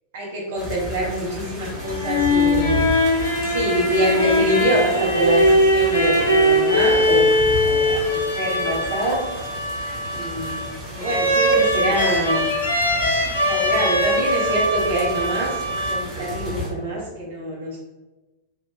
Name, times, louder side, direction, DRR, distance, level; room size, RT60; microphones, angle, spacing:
voice 1, 0.1-2.8 3.4-9.3 10.1-12.5 13.5-17.8, equal, 55° right, -4 dB, 0.6 m, -25 dB
sound 1, 0.6-16.7, equal, 20° right, 0.9 m, -34 dB
sound 2, 1.8-16.4, equal, 75° left, 0.5 m, -21 dB
2.5 x 2.1 x 3.6 m, 1.1 s
figure-of-eight pair, 90°, 0 cm